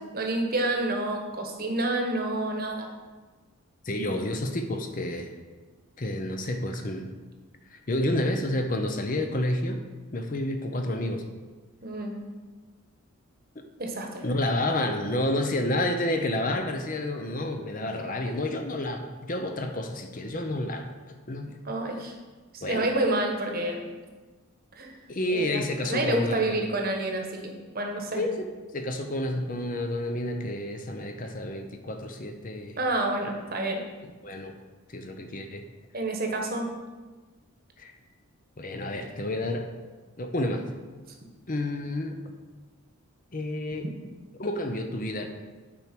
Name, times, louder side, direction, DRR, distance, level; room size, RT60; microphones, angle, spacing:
voice 1, 0.0-2.9 11.8-12.1 13.8-14.2 21.6-22.1 22.5-23.8 24.7-24.9 25.3-28.2 32.8-33.8 35.9-36.7, right 2 dB, 40° right, 2 dB, 1.1 m, -29 dB
voice 2, 3.8-5.3 6.0-7.1 7.7-9.8 10.1-11.2 14.2-20.9 21.3-21.6 22.6-22.9 25.1-26.7 28.1-28.5 28.7-32.8 34.0-34.5 34.9-35.6 37.8-37.9 38.6-39.7 40.2-40.7 41.5-42.2 43.3-43.9 44.4-45.3, left 1 dB, 35° left, 5 dB, 0.6 m, -30 dB
8.7 x 4.6 x 5.9 m, 1.3 s
head